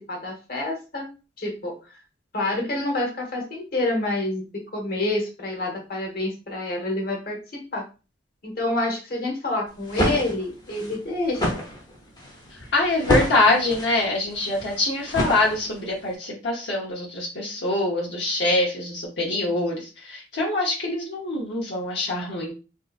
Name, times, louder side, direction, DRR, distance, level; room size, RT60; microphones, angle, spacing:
voice 1, 0.1-1.1 1.4-2.0 2.3-7.8 8.4-11.6, left 2 dB, 55° left, 0 dB, 1.1 m, -28 dB
sound 1, 9.7-16.0, equal, 25° left, 0.8 m, -28 dB
voice 2, 12.7-22.5, left 2 dB, 75° left, -3 dB, 0.8 m, -24 dB
3.5 x 2.7 x 2.4 m, 0.31 s
head